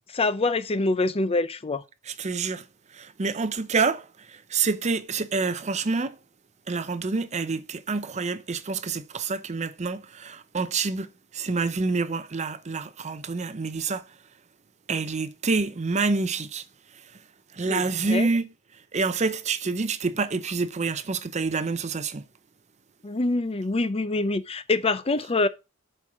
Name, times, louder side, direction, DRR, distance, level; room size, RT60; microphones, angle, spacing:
voice 1, 0.1-1.8 17.7-17.8 18.1-18.3 23.0-25.5, left 3 dB, 25° left, 0.5 m, -25 dB
voice 2, 2.1-2.6 3.0-4.1 4.5-6.2 6.7-11.1 11.3-14.0 14.9-16.6 17.6-18.5 18.9-22.2, right 4 dB, 30° right, 0.6 m, -27 dB
8.2 x 4.5 x 6.0 m
head